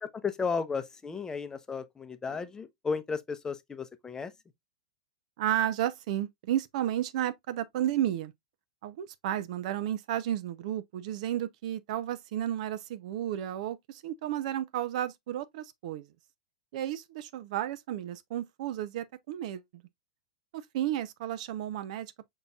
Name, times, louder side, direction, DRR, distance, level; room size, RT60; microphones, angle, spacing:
voice 1, 0.0-4.3, left 5 dB, 15° left, 0.7 m, -34 dB
voice 2, 5.4-8.3 8.8-16.1 16.7-19.6 20.5-22.1, right 11 dB, 60° right, 0.6 m, -32 dB
5.5 x 4.0 x 2.3 m
hypercardioid pair, 115°, 4 cm